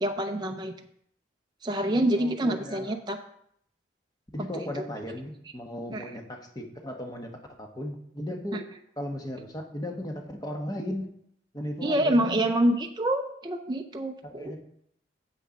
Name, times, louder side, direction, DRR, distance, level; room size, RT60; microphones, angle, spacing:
voice 1, 0.0-0.7 1.6-3.2 5.9-6.1 11.8-14.6, right 1 dB, 25° right, 4 dB, 0.5 m, -26 dB
voice 2, 1.7-3.0 4.3-8.7 9.0-11.1 11.5-12.5 14.2-14.6, left 1 dB, 20° left, 3 dB, 1.1 m, -36 dB
7.6 x 6.5 x 5.2 m, 0.70 s
head